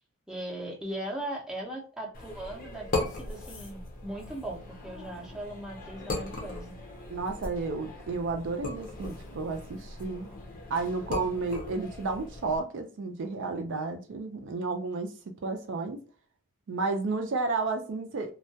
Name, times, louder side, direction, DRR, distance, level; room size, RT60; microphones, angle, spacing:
voice 1, 0.3-6.8, right 1 dB, 5° right, -2 dB, 0.5 m, -39 dB
sound 1, 2.1-12.6, left 2 dB, 40° left, 0.5 m, -38 dB
voice 2, 7.1-10.3 10.7-15.1 15.4-16.0 16.7-18.3, right 3 dB, 55° right, 5 dB, 0.4 m, -32 dB
2.2 x 2.1 x 2.7 m, 0.36 s
head